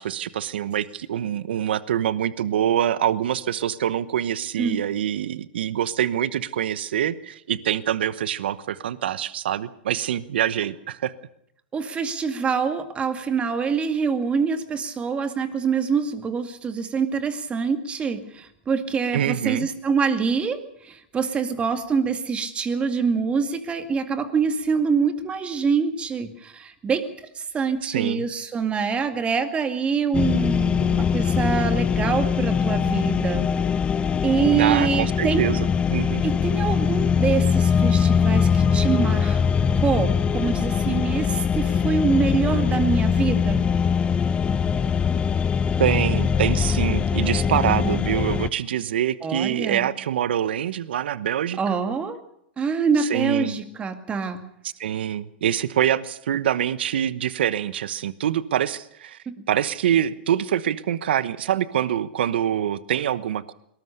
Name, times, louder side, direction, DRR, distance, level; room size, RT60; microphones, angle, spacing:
voice 1, 0.0-11.1 19.1-19.7 27.9-28.3 34.5-36.2 45.8-51.8 53.0-53.6 54.6-59.2 59.5-63.5, right 10 dB, 75° right, 16 dB, 1.0 m, -25 dB
voice 2, 11.7-33.5 34.2-35.5 36.2-39.4 39.8-43.7 49.2-49.9 51.6-52.2 52.6-54.4, right 5 dB, 20° right, 8 dB, 2.2 m, -25 dB
sound 1, 30.1-48.5, left 6 dB, 20° left, 1.0 m, -22 dB
22.0 x 19.5 x 6.7 m, 0.73 s
hypercardioid pair, 125°, 6 cm